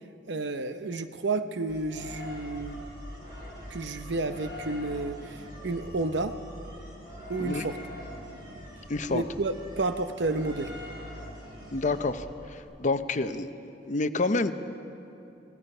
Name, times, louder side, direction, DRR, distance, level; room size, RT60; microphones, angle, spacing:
voice 1, 0.3-2.8 3.7-6.3 7.3-7.8 9.1-10.7, right 3 dB, 70° right, 9 dB, 0.8 m, -31 dB
sound 1, 1.7-12.6, left 1 dB, 25° right, 4.4 m, -43 dB
voice 2, 8.9-9.2 11.7-12.3 12.5-14.5, left 3 dB, 40° left, 9 dB, 0.7 m, -28 dB
25.5 x 18.5 x 5.5 m, 2.8 s
head